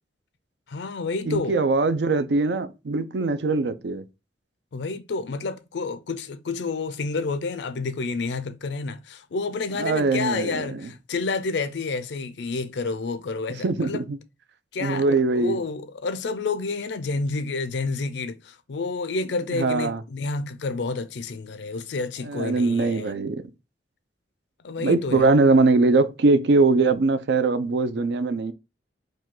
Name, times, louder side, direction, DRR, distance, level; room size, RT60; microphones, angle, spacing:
voice 1, 0.7-1.6 4.7-14.0 14.7-15.1 15.3-23.1 24.6-25.3, left 3 dB, 75° left, 0.5 m, -29 dB
voice 2, 1.3-4.0 9.8-10.8 13.6-14.2 14.8-15.6 19.5-20.0 22.2-23.5 24.8-28.5, right 3 dB, 70° right, 0.4 m, -21 dB
4.9 x 2.3 x 3.7 m
head